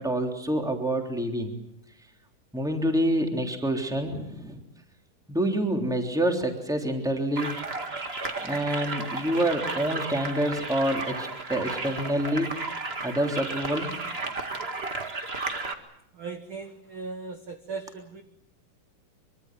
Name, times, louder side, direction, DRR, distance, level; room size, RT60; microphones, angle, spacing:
voice 1, 0.0-1.5 2.5-4.6 5.3-7.5 8.4-12.5 13.0-13.9, right 1 dB, ahead, 3 dB, 2.9 m, -27 dB
sound 1, 7.4-15.7, right 3 dB, 30° right, 1.2 m, -33 dB
voice 2, 16.2-18.2, right 4 dB, 50° right, 7 dB, 1.7 m, -38 dB
25.0 x 24.5 x 7.6 m, 0.74 s
omnidirectional pair, 3.9 m